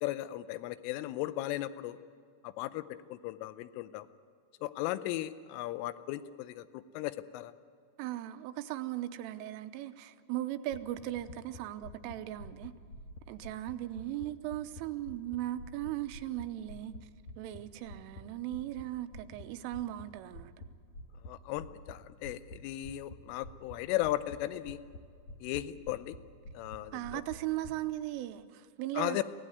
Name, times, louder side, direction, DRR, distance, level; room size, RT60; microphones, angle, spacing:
voice 1, 0.0-2.0 2.4-4.1 4.6-7.5 21.2-24.8 25.4-26.2 26.5-27.2 29.0-29.2, left 15 dB, 85° left, 3.3 m, -36 dB
voice 2, 8.0-12.7 13.3-16.9 17.4-20.5 26.9-29.2, right 14 dB, 90° right, 3.4 m, -38 dB
sound 1, 10.7-14.8 15.1-18.2 18.5-18.8 19.1-19.4 19.7-20.1 20.3-20.7 20.9-21.3 21.5-21.9 22.2-22.6 22.8-23.2 23.4-23.8 24.0-24.4 24.7-25.6 25.9-26.2 26.4-26.8 27.0-27.7, left 1 dB, 60° left, 1.8 m, -47 dB
23.5 x 16.5 x 9.3 m
omnidirectional pair, 5.6 m